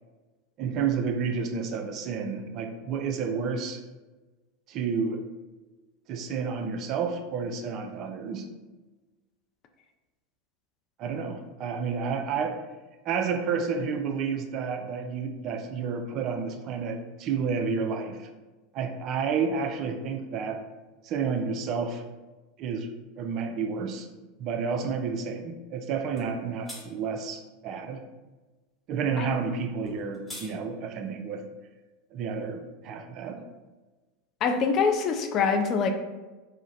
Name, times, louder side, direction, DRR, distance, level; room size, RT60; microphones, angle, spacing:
voice 1, 0.6-3.8 4.7-5.2 6.1-8.5 11.0-12.6 13.0-18.3 18.7-20.7 21.0-22.0 22.6-22.9 23.2-24.1 24.4-28.0 28.9-31.4 32.1-33.4, right 5 dB, 45° right, 6 dB, 0.4 m, -30 dB
sound 1, 26.2-26.3 26.7-26.8 29.8-30.5, left 1 dB, ahead, 1.2 m, -40 dB
voice 2, 34.4-35.9, left 5 dB, 40° left, 5 dB, 0.4 m, -24 dB
3.6 x 2.1 x 3.8 m, 1.2 s
figure-of-eight pair, 80°, 0 cm